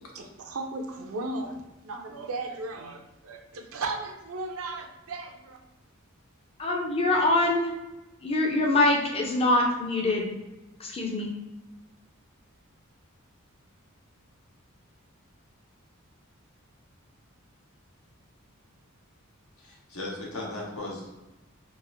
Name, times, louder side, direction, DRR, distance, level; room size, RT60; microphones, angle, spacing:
voice 1, 0.1-5.6, right 3 dB, 70° right, 3 dB, 0.5 m, -36 dB
voice 2, 6.6-7.7 8.2-10.3 10.8-11.3, left 2 dB, 25° left, 0 dB, 0.6 m, -24 dB
voice 3, 19.6-21.1, left 2 dB, 75° left, -3 dB, 1.0 m, -37 dB
4.0 x 2.5 x 2.5 m, 1.0 s
head